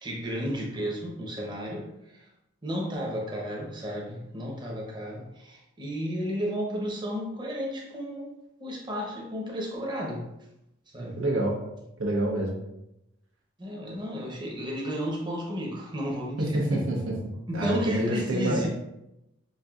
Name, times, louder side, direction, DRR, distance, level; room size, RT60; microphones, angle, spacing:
voice 1, 0.0-2.2 2.6-8.3 8.6-10.2 10.9-11.2 13.6-16.8 17.5-18.7, equal, 20° right, -3 dB, 0.7 m, -33 dB
voice 2, 11.0-11.6 12.0-12.6 16.4-17.1 17.5-18.7, right 1 dB, 85° right, -1 dB, 0.9 m, -27 dB
5.4 x 2.6 x 2.4 m, 0.88 s
head